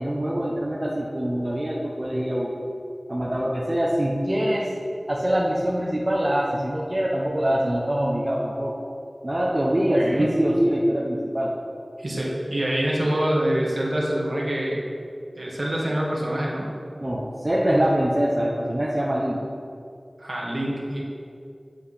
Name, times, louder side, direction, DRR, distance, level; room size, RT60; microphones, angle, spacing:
voice 1, 0.0-2.5 3.1-4.7 5.1-8.7 9.2-11.5 17.0-19.4, equal, 35° right, -4 dB, 1.2 m, -24 dB
voice 2, 9.9-10.3 12.0-14.8 15.3-16.7 20.2-21.0, right 1 dB, 65° right, -4 dB, 2.2 m, -25 dB
8.8 x 7.6 x 5.8 m, 2.5 s
wide cardioid pair, 40°, 0 cm